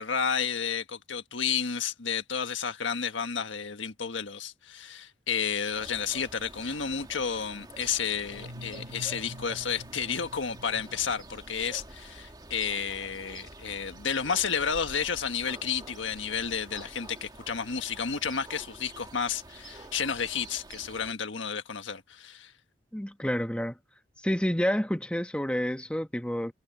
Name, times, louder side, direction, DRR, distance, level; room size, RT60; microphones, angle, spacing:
voice 1, 0.0-22.5, left 6 dB, 85° left, 1.5 m, -31 dB
sound 1, 5.7-21.1, right 2 dB, 20° right, 2.0 m, -48 dB
sound 2, 8.3-12.0, equal, 60° right, 1.9 m, -47 dB
voice 2, 22.9-23.8 24.2-26.5, equal, 5° left, 1.2 m, -29 dB
head